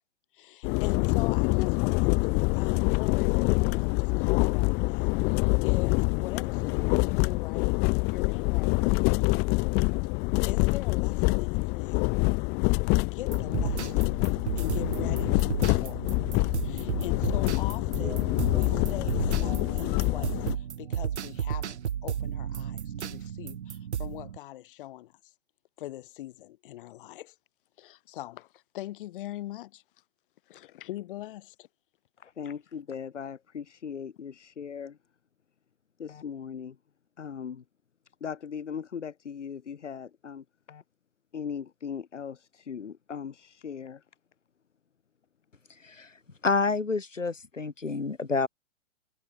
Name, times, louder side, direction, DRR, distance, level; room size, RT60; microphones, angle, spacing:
voice 1, 0.3-9.5 10.4-12.1 13.1-14.1 14.6-16.2 16.6-18.2 18.5-25.3 25.8-27.4 27.8-29.8 30.5-31.7 32.4-32.5, left 15 dB, 45° left, 6.0 m, -42 dB
sound 1, 0.6-20.6, left 29 dB, 25° left, 1.6 m, -26 dB
sound 2, 13.3-24.4, right 9 dB, 65° right, 1.1 m, -34 dB
voice 2, 32.2-35.0 36.0-36.8 37.2-37.6 38.2-40.8 41.3-44.0, left 7 dB, 70° left, 2.5 m, -39 dB
voice 3, 45.8-46.1 46.4-48.5, left 4 dB, 85° left, 3.7 m, -28 dB
figure-of-eight pair, 125°, 37 cm